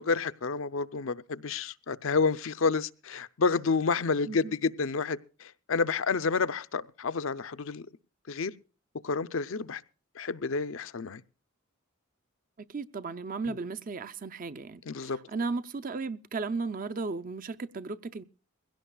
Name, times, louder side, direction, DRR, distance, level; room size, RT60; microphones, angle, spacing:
voice 1, 0.0-7.9 8.3-8.5 9.0-9.8 10.2-11.2 13.5-13.6 14.9-15.2, left 4 dB, 65° left, 0.6 m, -29 dB
voice 2, 12.7-18.2, right 4 dB, 40° right, 0.6 m, -35 dB
21.5 x 17.0 x 2.3 m
head